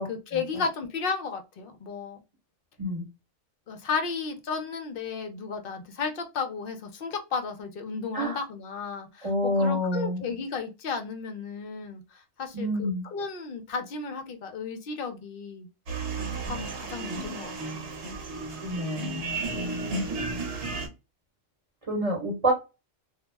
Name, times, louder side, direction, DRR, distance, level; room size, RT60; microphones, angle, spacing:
voice 1, 0.0-2.2 3.7-15.7 16.5-17.9, left 5 dB, 60° left, 0.6 m, -34 dB
voice 2, 9.2-10.2 12.5-13.0 18.6-19.4 21.9-22.5, equal, 30° right, 0.7 m, -28 dB
sound 1, 15.9-20.9, right 3 dB, 65° right, 1.0 m, -33 dB
2.3 x 2.0 x 3.2 m
omnidirectional pair, 1.3 m